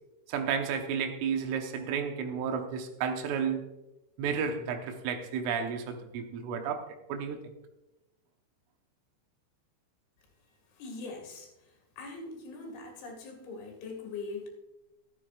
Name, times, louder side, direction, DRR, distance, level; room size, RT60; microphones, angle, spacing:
voice 1, 0.3-3.7 4.2-7.4, right 6 dB, 85° right, 5 dB, 3.6 m, -32 dB
voice 2, 10.7-11.5 12.0-14.5, left 3 dB, 70° left, 1 dB, 4.3 m, -41 dB
14.0 x 12.5 x 2.4 m, 0.95 s
omnidirectional pair, 5.6 m